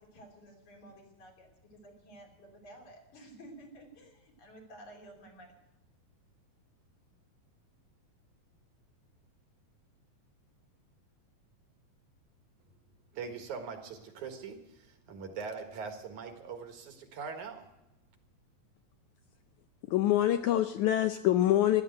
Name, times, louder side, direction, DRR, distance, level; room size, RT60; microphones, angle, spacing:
voice 1, 0.0-5.5, right 1 dB, 55° left, 4.3 m, -53 dB
voice 2, 13.1-17.7, right 5 dB, 60° right, 2.8 m, -42 dB
voice 3, 19.9-21.8, left 13 dB, 80° left, 1.7 m, -25 dB
15.0 x 11.5 x 7.8 m
omnidirectional pair, 4.1 m